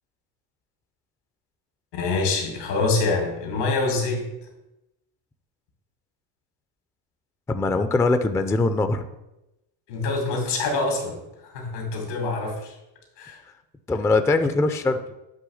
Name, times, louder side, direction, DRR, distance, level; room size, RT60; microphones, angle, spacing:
voice 1, 1.9-4.3 9.9-11.2 11.5-12.7 13.2-13.4, left 3 dB, 85° left, 2 dB, 2.5 m, -25 dB
voice 2, 7.5-9.1 13.9-15.0, left 3 dB, 5° left, 9 dB, 0.3 m, -22 dB
7.7 x 3.2 x 6.3 m, 0.92 s
supercardioid pair, 90°, 48 cm